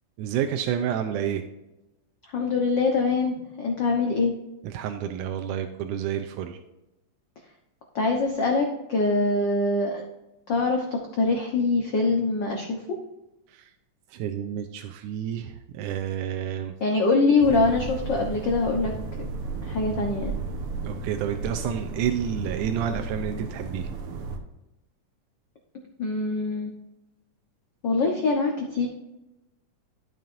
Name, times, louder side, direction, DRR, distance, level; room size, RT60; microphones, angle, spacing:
voice 1, 0.2-1.4 4.6-6.6 13.5-13.7 14.1-16.7 20.8-23.9, right 9 dB, 85° right, 6 dB, 2.1 m, -29 dB
voice 2, 2.3-4.3 7.9-10.0 10.5-10.8 11.1-12.8 16.8-18.9 19.2-19.3 19.6-20.3 26.0-26.7 27.8-28.9, left 3 dB, 80° left, 1 dB, 1.0 m, -23 dB
sound 1, 17.4-24.4, right 3 dB, 60° right, 1.6 m, -34 dB
12.5 x 7.3 x 2.6 m, 0.96 s
omnidirectional pair, 3.6 m